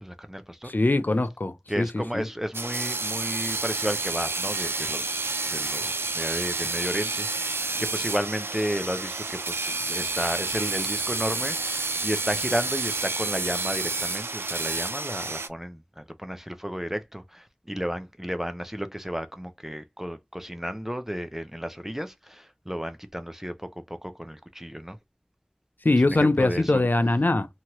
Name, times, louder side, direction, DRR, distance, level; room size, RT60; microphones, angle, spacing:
voice 1, 0.0-0.7 1.7-25.0 25.9-26.8, equal, 10° right, 0.4 m, -33 dB
voice 2, 0.6-2.3 25.8-27.5, left 2 dB, 55° left, 0.5 m, -22 dB
sound 1, 2.5-15.5, right 3 dB, 90° right, 0.3 m, -29 dB
2.9 x 2.3 x 2.9 m
wide cardioid pair, 40°, 4 cm